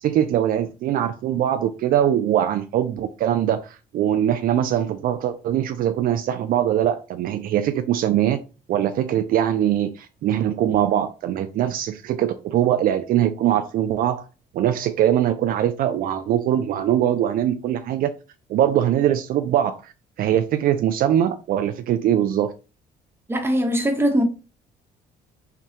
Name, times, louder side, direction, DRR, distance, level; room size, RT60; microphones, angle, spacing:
voice 1, 0.0-8.4 8.7-14.3 14.5-18.1 18.5-19.9 20.2-22.5, right 11 dB, 60° right, 0.4 m, -22 dB
voice 2, 23.3-24.2, equal, 15° right, 1.0 m, -21 dB
5.7 x 2.3 x 2.8 m
cardioid pair, 110°, 17 cm